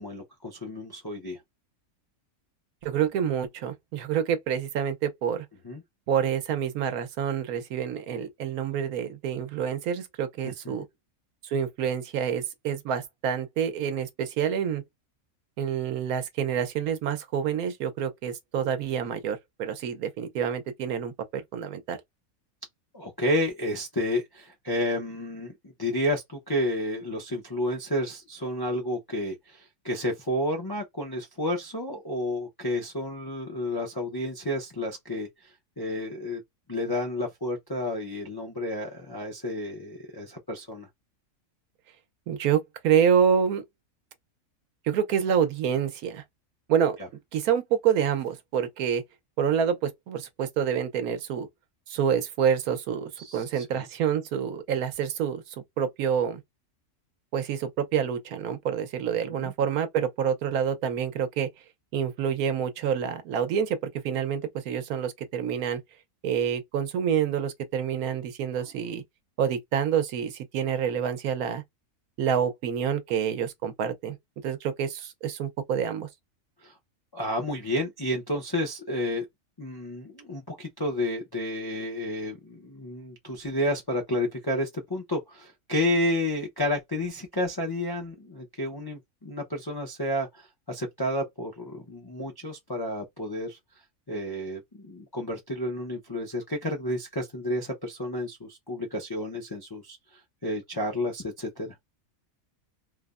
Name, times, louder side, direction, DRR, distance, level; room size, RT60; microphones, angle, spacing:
voice 1, 0.0-1.4 5.6-5.8 10.4-10.8 22.9-25.5 25.8-36.4 36.7-40.9 47.0-47.1 53.2-53.9 59.3-59.5 76.6-76.7 77.1-79.2 79.6-93.6 94.1-101.7, left 1 dB, 40° left, 0.3 m, -31 dB
voice 2, 2.8-5.5 6.1-10.9 11.4-14.8 15.6-21.1 21.5-22.0 42.3-43.6 44.8-46.2 46.7-47.0 47.3-49.0 49.4-51.5 51.9-55.4 55.8-56.4 57.3-61.5 61.9-65.8 66.2-69.0 69.4-71.6 72.2-74.2 74.4-76.1, right 8 dB, 80° right, 1.2 m, -27 dB
3.2 x 2.1 x 2.3 m
omnidirectional pair, 1.5 m